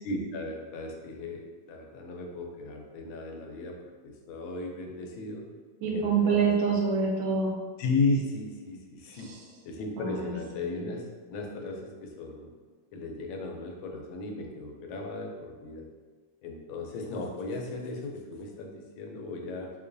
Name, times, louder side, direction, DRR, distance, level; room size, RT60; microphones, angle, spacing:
voice 1, 0.0-3.8 4.0-5.4 5.9-6.5 7.8-9.3 9.6-12.5 12.9-15.8 16.4-19.7, left 3 dB, 90° left, 1 dB, 1.4 m, -35 dB
voice 2, 5.8-7.6 9.1-9.4 10.0-10.3 10.7-10.9, right 5 dB, 90° right, -1 dB, 1.5 m, -26 dB
3.9 x 3.0 x 2.5 m, 1.4 s
omnidirectional pair, 2.1 m